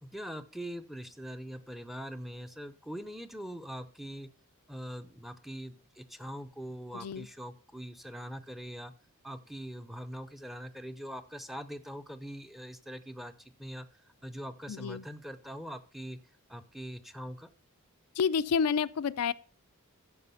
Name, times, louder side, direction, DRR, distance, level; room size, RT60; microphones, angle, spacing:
voice 1, 0.0-4.3 4.7-8.9 9.2-13.9 14.2-16.2 16.5-17.5, equal, ahead, 0.6 m, -42 dB
voice 2, 6.9-7.3 14.7-15.0 18.2-19.3, left 6 dB, 85° left, 0.4 m, -29 dB
13.5 x 4.9 x 5.6 m
head